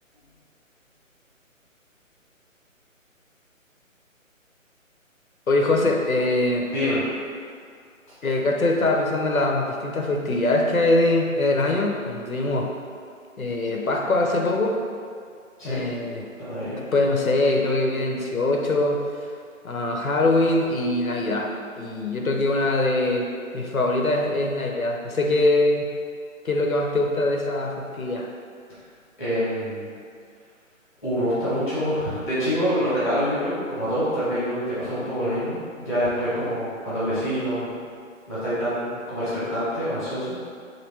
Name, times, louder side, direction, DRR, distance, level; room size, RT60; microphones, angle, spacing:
voice 1, 5.5-6.7 8.2-12.7 13.4-14.8 15.6-16.3 16.9-19.3 19.6-25.9 26.4-28.3, left 2 dB, 90° left, 1 dB, 0.7 m, -23 dB
voice 2, 16.4-16.8 29.2-29.9 31.0-37.7 38.3-40.3, equal, ahead, -12 dB, 0.8 m, -26 dB
3.1 x 2.8 x 4.1 m, 2.2 s
figure-of-eight pair, 140°, 41 cm